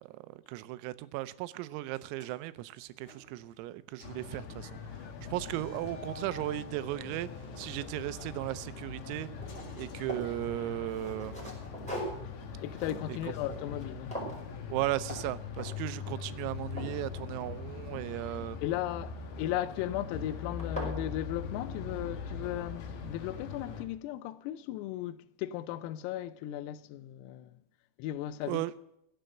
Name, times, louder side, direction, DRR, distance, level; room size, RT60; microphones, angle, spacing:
voice 1, 0.0-4.8 5.3-7.3 7.6-9.3 9.8-11.5 13.1-13.3 14.7-18.6 28.5-28.7, right 16 dB, 90° right, 3.4 m, -36 dB
sound 1, 1.9-3.7 4.0-4.3 5.3-8.5 9.4-10.8, left 2 dB, 35° left, 4.5 m, -53 dB
sound 2, 4.0-23.8, left 5 dB, 60° left, 2.5 m, -42 dB
sound 3, 6.7-6.8 7.2-8.7 9.0-10.3 10.9-13.9 14.1-14.5 15.0-15.2 15.6-15.9 16.3-17.9 19.4-19.8 20.3-20.4 20.6-21.0, right 1 dB, ahead, 4.7 m, -42 dB
voice 2, 12.6-14.1 18.6-27.6 28.0-28.6, left 13 dB, 85° left, 3.4 m, -36 dB
15.5 x 8.2 x 7.7 m
omnidirectional pair, 6.0 m